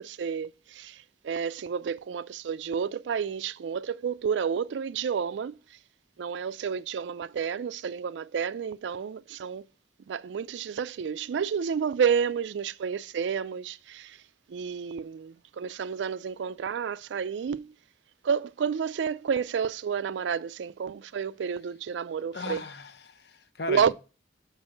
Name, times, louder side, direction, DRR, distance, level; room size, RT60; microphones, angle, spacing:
voice 1, 0.0-5.6 6.2-9.6 10.1-14.2 14.5-17.7 18.2-22.6 23.7-23.9, right 7 dB, 85° right, 0.4 m, -30 dB
voice 2, 22.3-23.9, left 3 dB, 65° left, 0.7 m, -37 dB
6.2 x 4.7 x 6.3 m
head